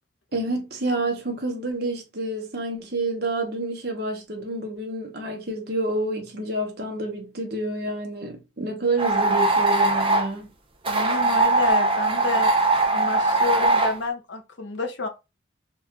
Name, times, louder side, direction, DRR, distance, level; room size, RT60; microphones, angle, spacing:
voice 1, 0.3-10.5, right 2 dB, 55° right, 1.0 m, -28 dB
sound 1, 9.0-10.3 10.8-14.0, right 2 dB, 25° right, 0.6 m, -21 dB
voice 2, 10.9-12.5 12.9-15.1, left 3 dB, 65° left, 0.7 m, -29 dB
4.1 x 2.4 x 2.9 m
head